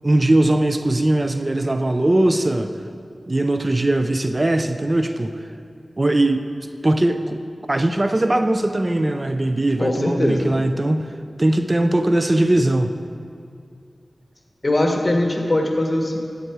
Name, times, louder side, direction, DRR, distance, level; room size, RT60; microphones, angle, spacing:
voice 1, 0.0-2.7 3.3-5.3 6.0-6.5 6.8-7.4 7.7-11.1 11.4-12.9, right 1 dB, 35° right, 8 dB, 0.5 m, -20 dB
voice 2, 9.8-10.5 14.6-16.2, left 1 dB, 40° left, 1 dB, 1.4 m, -20 dB
11.0 x 8.0 x 4.7 m, 2.3 s
wide cardioid pair, 55°, 0 cm